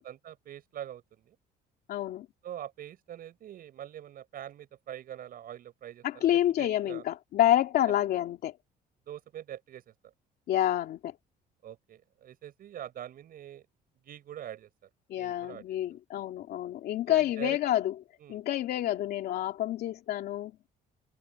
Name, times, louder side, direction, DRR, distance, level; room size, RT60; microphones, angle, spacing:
voice 1, 0.0-1.4 2.4-7.0 7.9-8.0 9.1-10.1 11.6-13.6 14.0-14.7 15.2-15.6 17.1-17.6 18.2-18.4, right 11 dB, 60° right, 7.0 m, -44 dB
voice 2, 1.9-2.3 6.0-8.5 10.5-11.1 15.1-17.9 18.3-20.5, left 12 dB, 70° left, 2.7 m, -28 dB
cardioid pair, 110°, 17 cm